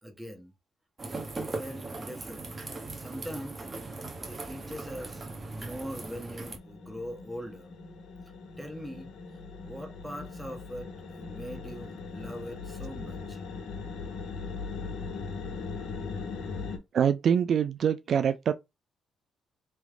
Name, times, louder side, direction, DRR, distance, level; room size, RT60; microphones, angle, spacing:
voice 1, 0.0-0.5 1.0-2.5 2.9-3.7 4.3-7.7 8.6-9.1 9.6-13.4, equal, 5° right, 1.2 m, -42 dB
sound 1, 1.0-6.6, right 3 dB, 30° right, 1.1 m, -39 dB
sound 2, 4.1-16.8, left 4 dB, 70° left, 1.1 m, -40 dB
voice 2, 16.9-18.5, right 8 dB, 60° right, 0.3 m, -24 dB
3.4 x 3.0 x 3.7 m
cardioid pair, 90°, 0 cm